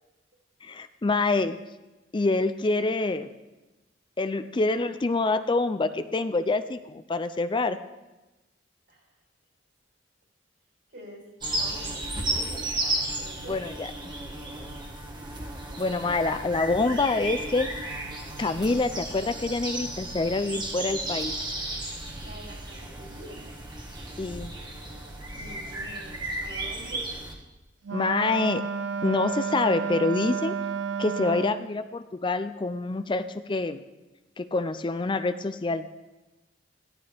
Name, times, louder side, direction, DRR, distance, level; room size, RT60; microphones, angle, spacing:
voice 1, 0.6-1.6 2.1-3.3 4.2-7.8 13.5-14.1 15.8-17.7 18.4-21.3 24.2-24.5 27.9-28.6 29.0-30.5 31.0-33.8 34.4-35.9, left 3 dB, 25° left, 11 dB, 0.4 m, -26 dB
voice 2, 10.9-11.2 11.5-12.6 13.2-13.6 22.2-23.4 25.3-27.1, right 1 dB, 70° right, -2 dB, 4.6 m, -46 dB
sound 1, 11.4-27.3, right 1 dB, 25° right, 1.7 m, -34 dB
Wind instrument woodwind instrument, 27.8-31.7, right 6 dB, 85° right, 0.5 m, -31 dB
15.0 x 12.5 x 3.4 m, 1.1 s
head